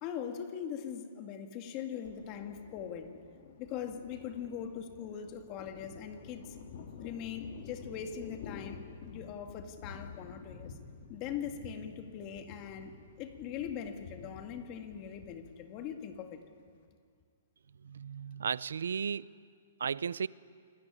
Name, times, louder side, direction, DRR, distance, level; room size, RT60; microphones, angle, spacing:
voice 1, 0.0-3.1 3.6-6.6 7.0-10.8 11.1-16.4, left 8 dB, 30° left, 2.1 m, -41 dB
Thunder, 2.0-16.8, left 5 dB, 50° left, 3.4 m, -50 dB
voice 2, 17.8-19.4 19.8-20.3, right 6 dB, 90° right, 0.6 m, -35 dB
28.0 x 21.0 x 9.9 m
hypercardioid pair, 160°, 0 cm